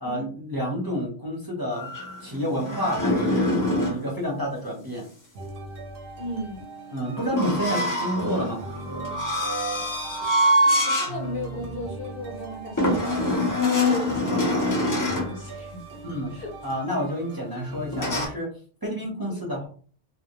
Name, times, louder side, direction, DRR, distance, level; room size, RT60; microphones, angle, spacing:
voice 1, 0.0-1.9 2.2-3.5 3.9-5.0 6.9-8.6 16.0-16.3 16.6-18.5 18.8-19.7, equal, 25° right, -3 dB, 0.6 m, -29 dB
sound 1, 1.7-4.0 7.3-11.2 11.6-11.8 12.8-15.3 17.9-18.3, left 1 dB, 25° left, 0.5 m, -24 dB
sound 2, 5.3-18.3, right 2 dB, 60° right, 0.8 m, -41 dB
voice 2, 6.2-6.7 10.6-13.5 13.8-15.8 16.3-16.5 19.3-19.5, equal, 60° left, 1 dB, 0.7 m, -36 dB
2.1 x 2.1 x 2.8 m, 0.42 s
omnidirectional pair, 1.2 m